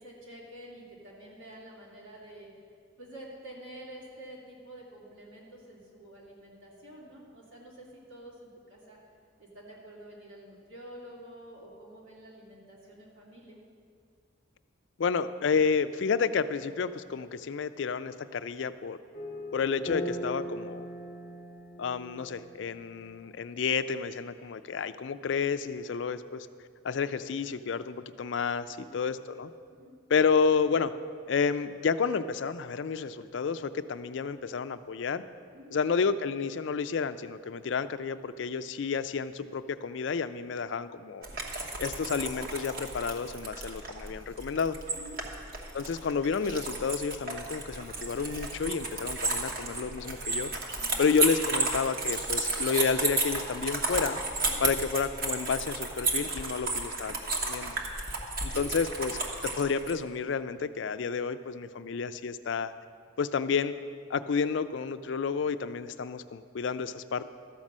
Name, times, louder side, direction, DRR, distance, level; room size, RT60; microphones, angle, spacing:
voice 1, 0.0-2.5 3.0-9.0 9.4-13.6 28.7-29.0 29.7-30.0 35.5-35.8 44.9-45.2 50.7-51.0 54.4-54.7 58.5-58.7, right 1 dB, 85° right, -4 dB, 2.7 m, -48 dB
voice 2, 15.0-19.0 19.5-20.9 21.8-26.5 26.8-29.5 30.1-30.9 31.3-35.2 35.7-41.3 41.8-44.8 45.7-50.5 51.0-54.2 54.6-57.1 57.5-57.7 58.4-62.7 63.2-63.7 64.1-67.2, left 5 dB, 65° left, 12 dB, 0.4 m, -30 dB
sound 1, 19.1-23.6, equal, 40° left, 0.9 m, -40 dB
sound 2, 41.2-59.9, right 3 dB, 50° right, 1.1 m, -33 dB
13.0 x 5.3 x 7.3 m, 2.2 s
head